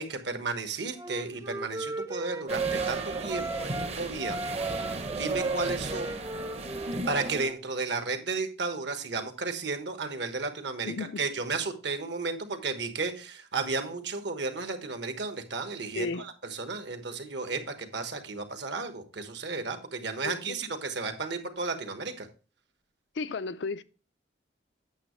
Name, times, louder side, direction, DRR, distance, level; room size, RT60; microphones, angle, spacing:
voice 1, 0.0-6.2 7.1-22.3, right 4 dB, 65° right, 1.3 m, -33 dB
Wind instrument woodwind instrument, 1.0-3.9 4.2-7.6, right 3 dB, 15° right, 0.3 m, -36 dB
sound 1, 2.5-7.5, right 3 dB, 35° right, 0.8 m, -34 dB
voice 2, 10.8-11.2 15.9-16.3 20.2-20.6 23.1-23.8, left 4 dB, 65° left, 0.4 m, -34 dB
8.8 x 7.2 x 3.1 m
head